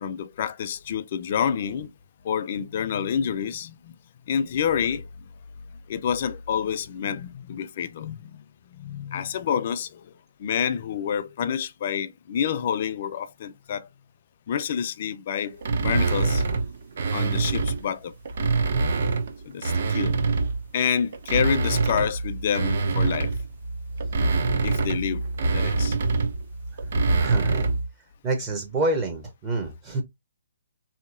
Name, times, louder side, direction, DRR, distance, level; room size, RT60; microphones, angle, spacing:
voice 1, 0.0-1.9 2.2-4.0 4.3-5.1 5.9-8.4 8.7-10.0 10.4-13.9 14.5-16.4 17.1-18.1 19.5-20.2 20.7-23.3 24.6-25.2 25.5-26.0, left 8 dB, 45° left, 0.4 m, -28 dB
sound 1, 15.6-17.8 18.3-20.7 21.1-27.9, right 3 dB, 55° right, 0.6 m, -25 dB
voice 2, 27.2-27.7 28.2-30.0, right 2 dB, 20° right, 0.7 m, -27 dB
3.1 x 2.8 x 2.4 m
hypercardioid pair, 150°, 0 cm